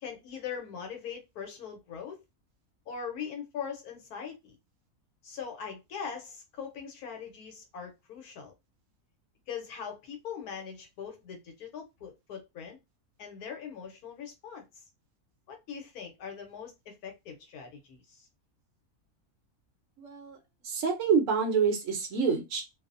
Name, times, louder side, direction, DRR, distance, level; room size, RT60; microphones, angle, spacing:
voice 1, 0.0-2.2 2.9-4.6 5.2-8.5 9.5-12.8 13.2-14.7 15.5-18.3, left 7 dB, 85° left, 1.3 m, -41 dB
voice 2, 20.0-20.4 20.6-22.6, right 6 dB, 65° right, 0.9 m, -27 dB
2.8 x 2.0 x 2.4 m
omnidirectional pair, 1.5 m